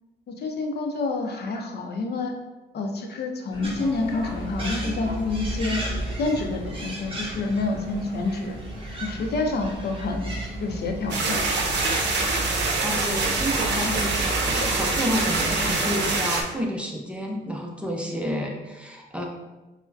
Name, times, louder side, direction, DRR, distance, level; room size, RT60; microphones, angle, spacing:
voice 1, 0.3-2.3 2.7-5.8 6.2-8.6 9.0-10.3 10.6-11.4 13.8-13.9, left 3 dB, 55° left, 3 dB, 0.6 m, -28 dB
sound 1, 3.5-15.8, right 1 dB, 20° left, 1.4 m, -35 dB
sound 2, 3.6-12.8, right 1 dB, 25° right, 1.0 m, -39 dB
sound 3, 11.1-16.4, right 3 dB, 60° right, 0.7 m, -25 dB
voice 2, 12.8-19.3, equal, 5° right, 0 dB, 0.6 m, -30 dB
4.7 x 2.1 x 2.6 m, 1.1 s
cardioid pair, 90°, 20 cm